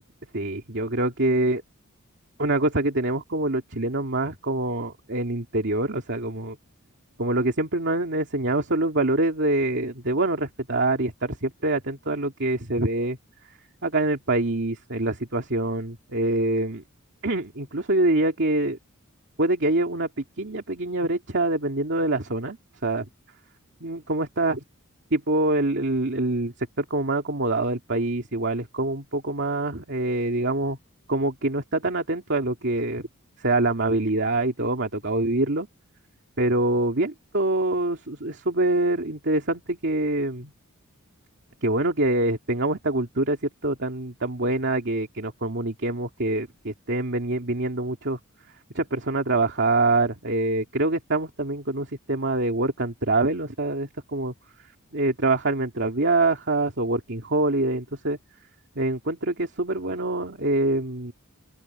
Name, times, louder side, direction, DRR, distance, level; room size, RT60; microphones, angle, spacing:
voice 1, 0.3-1.6 2.4-6.6 7.2-13.2 13.8-16.8 17.2-18.8 19.4-22.6 22.8-23.0 23.8-24.6 25.1-30.8 31.1-33.0 33.4-35.7 36.4-40.5 41.6-48.2 48.7-54.3 54.9-58.2 58.8-61.1, right 2 dB, 55° right, 2.4 m, -25 dB
open air
head